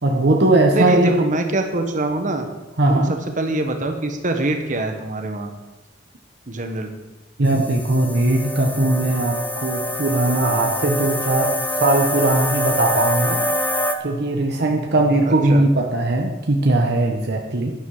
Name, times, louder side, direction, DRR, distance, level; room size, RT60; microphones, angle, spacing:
voice 1, 0.0-1.1 2.8-3.1 7.4-11.5 11.8-13.4 14.0-17.7, right 2 dB, 60° right, 2 dB, 1.2 m, -19 dB
voice 2, 0.7-2.5 2.9-5.5 6.5-6.9 15.5-15.6, right 2 dB, 40° right, 5 dB, 1.4 m, -24 dB
sound 1, 7.5-14.0, equal, 10° left, 0.9 m, -25 dB
11.5 x 10.5 x 5.0 m, 1.1 s
head